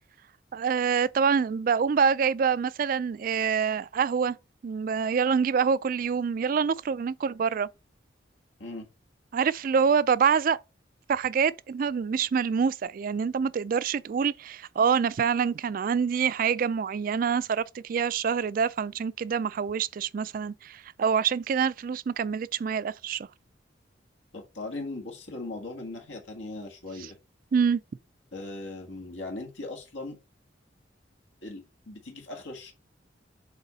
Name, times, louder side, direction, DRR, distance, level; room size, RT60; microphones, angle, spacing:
voice 1, 0.5-4.4 4.6-7.7 9.3-10.6 11.1-23.3 27.5-27.8, right 6 dB, 50° right, 0.3 m, -26 dB
voice 2, 24.3-27.2 28.3-30.2 31.4-32.7, left 2 dB, 90° left, 1.8 m, -39 dB
8.1 x 3.6 x 4.0 m
head